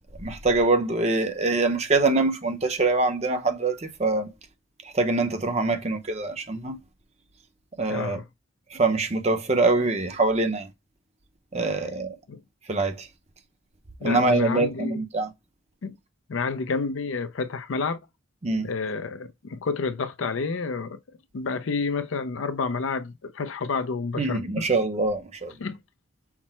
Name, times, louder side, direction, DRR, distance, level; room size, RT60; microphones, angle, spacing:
voice 1, 0.2-4.3 4.9-6.8 7.8-8.2 8.7-10.7 11.5-12.1 12.7-13.1 14.0-15.3 18.4-18.7 24.2-25.5, right 3 dB, 30° right, 0.7 m, -24 dB
voice 2, 7.9-8.2 12.3-12.4 14.0-15.0 15.8-15.9 16.3-18.0 18.6-21.0 21.3-24.6 25.6-25.8, left 4 dB, 75° left, 0.5 m, -29 dB
5.8 x 2.1 x 4.2 m
head